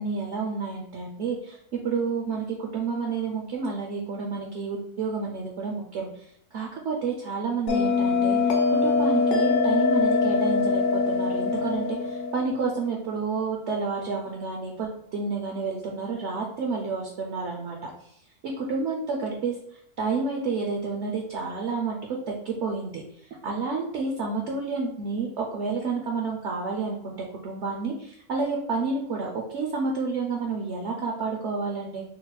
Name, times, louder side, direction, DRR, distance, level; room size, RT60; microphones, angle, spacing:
voice 1, 0.0-6.1 6.5-17.9 18.6-19.5 20.0-23.0 23.4-32.0, right 4 dB, 65° right, 0 dB, 0.8 m, -30 dB
Bell, 7.7-12.8, left 4 dB, 70° left, 1.0 m, -23 dB
3.8 x 2.1 x 4.1 m, 0.69 s
omnidirectional pair, 1.6 m